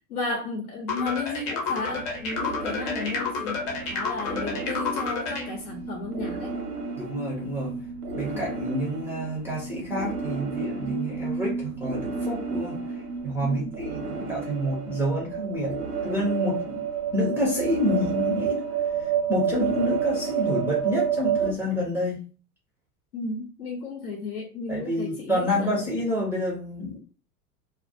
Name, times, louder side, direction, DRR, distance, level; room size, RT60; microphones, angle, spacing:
voice 1, 0.0-6.6 8.3-8.4 13.4-13.8 23.1-25.8, left 3 dB, 70° left, 0.7 m, -34 dB
sound 1, 0.9-5.5, left 4 dB, 35° left, 0.8 m, -30 dB
sound 2, 1.8-21.5, right 6 dB, 80° right, 0.8 m, -31 dB
voice 2, 7.0-7.7 8.1-12.8 13.2-15.7 16.0-16.8 17.1-18.6 19.0-22.2 24.7-27.0, left 1 dB, 5° right, 0.4 m, -28 dB
2.2 x 2.2 x 2.6 m
figure-of-eight pair, 90°, 46 cm